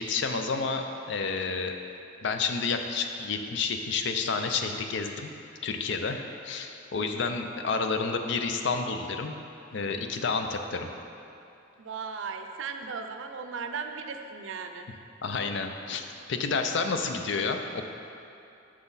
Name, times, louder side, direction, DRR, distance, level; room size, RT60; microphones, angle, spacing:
voice 1, 0.0-1.7 2.2-5.3 5.6-9.4 9.7-10.9 15.2-16.0 16.3-17.9, left 4 dB, 65° left, 6 dB, 0.5 m, -30 dB
voice 2, 11.8-14.9, right 5 dB, 85° right, 6 dB, 0.5 m, -37 dB
6.3 x 5.9 x 4.0 m, 2.8 s
head